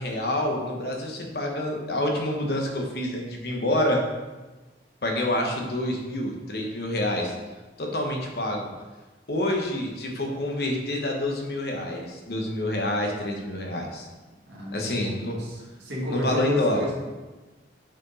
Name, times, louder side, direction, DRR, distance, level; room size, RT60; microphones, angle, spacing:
voice 1, 0.0-4.0 5.0-7.3 7.8-8.7 9.3-14.1 14.7-15.4 16.1-16.9, left 1 dB, 60° left, 1 dB, 1.0 m, -27 dB
voice 2, 14.5-17.0, left 2 dB, 80° right, -5 dB, 1.7 m, -32 dB
6.1 x 4.6 x 4.0 m, 1.2 s
head